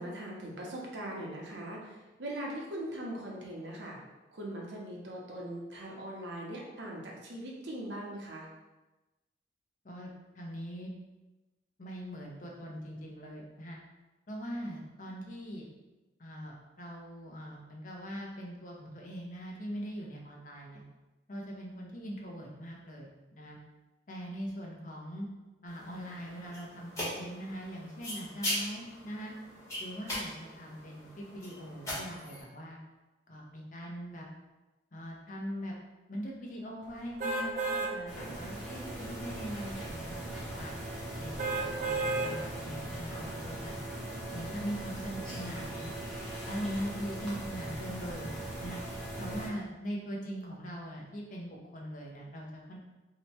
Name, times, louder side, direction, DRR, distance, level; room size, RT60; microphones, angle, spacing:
voice 1, 0.0-4.0 4.3-8.5 49.4-49.6, right 1 dB, 80° right, -2 dB, 0.8 m, -40 dB
voice 2, 10.4-10.9 11.8-13.8 14.3-15.7 16.2-20.8 21.3-23.6 24.1-25.3 25.6-29.3 29.8-32.8 33.3-34.3 34.9-35.7 36.1-40.7 41.2-43.8 44.3-45.9 46.5-48.3 48.6-48.8 49.2-52.8, equal, 45° left, -1 dB, 0.6 m, -41 dB
sound 1, 25.7-32.4, equal, 20° left, 1.1 m, -40 dB
sound 2, 37.2-37.9 38.5-38.6 41.4-42.3 42.9-43.0, right 3 dB, 40° right, 0.4 m, -31 dB
sound 3, 38.1-49.5, right 1 dB, ahead, 0.9 m, -40 dB
2.8 x 2.2 x 4.1 m, 1.1 s
head